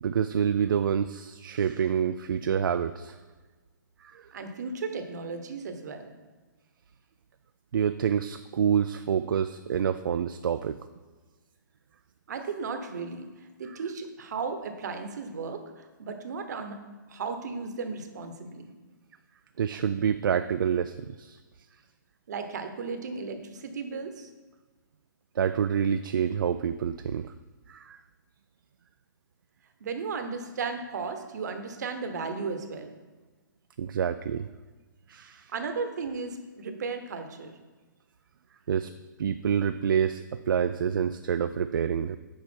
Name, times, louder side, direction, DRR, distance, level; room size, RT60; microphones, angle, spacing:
voice 1, 0.0-3.2 4.0-4.3 7.7-10.8 13.7-13.8 19.6-21.4 25.4-27.3 27.7-28.0 33.8-34.5 35.1-35.5 38.7-38.9 39.2-42.2, right 8 dB, 85° right, 10 dB, 0.4 m, -27 dB
voice 2, 4.3-6.1 12.3-18.7 22.3-24.3 29.8-32.9 35.5-37.6, right 4 dB, 55° right, 7 dB, 1.0 m, -35 dB
7.6 x 5.1 x 4.4 m, 1.3 s
hypercardioid pair, 165°, 11 cm